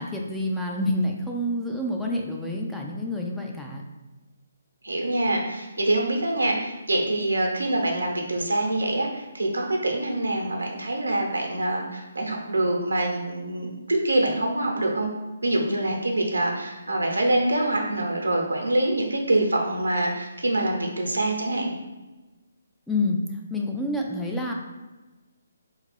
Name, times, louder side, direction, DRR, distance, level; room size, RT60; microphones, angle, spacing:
voice 1, 0.0-3.8 22.9-24.5, left 1 dB, 5° left, -1 dB, 0.3 m, -28 dB
voice 2, 4.8-15.1 15.4-21.7, right 1 dB, 85° right, 1 dB, 0.8 m, -25 dB
3.5 x 2.3 x 3.2 m, 1.2 s
figure-of-eight pair, 145°, 0 cm